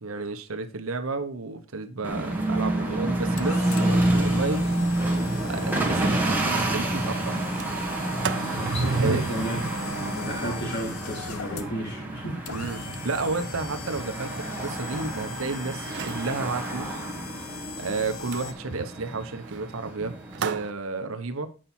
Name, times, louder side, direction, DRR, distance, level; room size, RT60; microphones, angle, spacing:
voice 1, 0.0-4.7 5.4-6.4 6.7-7.4 8.9-9.2 12.5-14.3 14.6-17.0 17.8-21.5, right 3 dB, 70° right, 0.9 m, -32 dB
sound 1, 2.0-20.6, right 1 dB, 10° right, 1.7 m, -29 dB
sound 2, 2.6-18.5, left 5 dB, 85° left, 0.8 m, -41 dB
Sliding door, 5.9-6.0 6.3-6.4 6.7-7.0 7.4-15.4 15.8-16.3 18.3-20.7, right 4 dB, 55° right, 0.5 m, -35 dB
voice 2, 8.5-12.4, right 1 dB, 55° left, 3.8 m, -33 dB
8.8 x 5.6 x 4.3 m
head